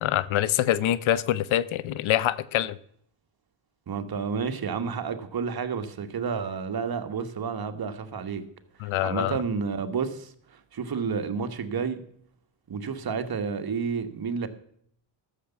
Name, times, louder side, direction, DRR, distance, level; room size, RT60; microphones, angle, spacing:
voice 1, 0.0-2.8 8.8-9.4, left 12 dB, 70° left, 0.7 m, -25 dB
voice 2, 3.9-8.4 9.0-12.0 12.7-14.5, right 6 dB, 45° right, 1.5 m, -30 dB
13.0 x 6.8 x 7.1 m
cardioid pair, 85°, 49 cm